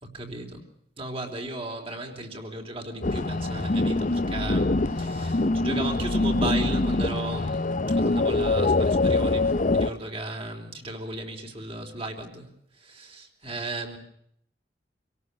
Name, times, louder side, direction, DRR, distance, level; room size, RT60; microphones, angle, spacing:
voice 1, 0.1-0.6 1.0-14.0, right 2 dB, 35° right, 4 dB, 3.8 m, -35 dB
sound 1, 3.0-9.9, left 2 dB, 45° left, 0.8 m, -24 dB
26.5 x 18.0 x 6.8 m, 0.69 s
head